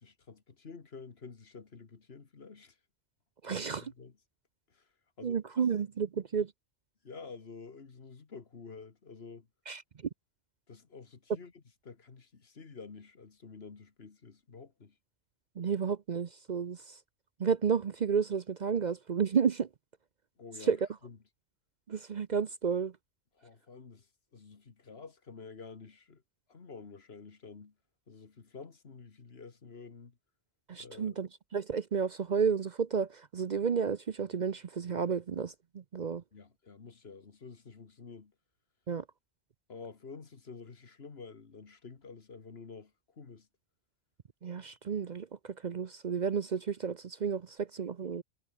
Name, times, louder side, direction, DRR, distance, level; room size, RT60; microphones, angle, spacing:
voice 1, 0.0-2.8 3.5-4.2 4.7-4.9 5.2-5.4 7.0-9.5 10.7-15.0 20.4-21.2 23.3-24.1 24.3-26.2 26.5-27.7 28.1-30.2 30.8-31.2 36.3-38.3 39.7-43.5, left 5 dB, 65° left, 1.9 m, -49 dB
voice 2, 3.4-3.9 5.2-6.5 9.7-9.8 15.6-16.9 17.4-19.7 20.7-20.8 21.9-22.9 30.7-36.2 38.9-39.0 44.4-48.2, right 6 dB, 45° right, 0.7 m, -32 dB
omnidirectional pair, 1.1 m